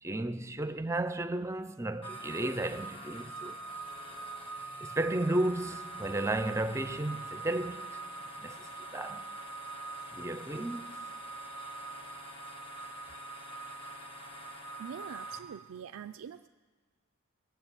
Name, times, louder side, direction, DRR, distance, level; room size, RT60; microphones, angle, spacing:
voice 1, 0.0-3.6 4.8-7.9 8.4-9.3 10.1-10.9, right 1 dB, 15° right, 0.5 m, -33 dB
sound 1, 2.0-15.4, right 3 dB, 25° left, 1.2 m, -43 dB
voice 2, 14.8-16.5, right 8 dB, 80° right, 0.4 m, -44 dB
19.5 x 7.3 x 9.0 m
head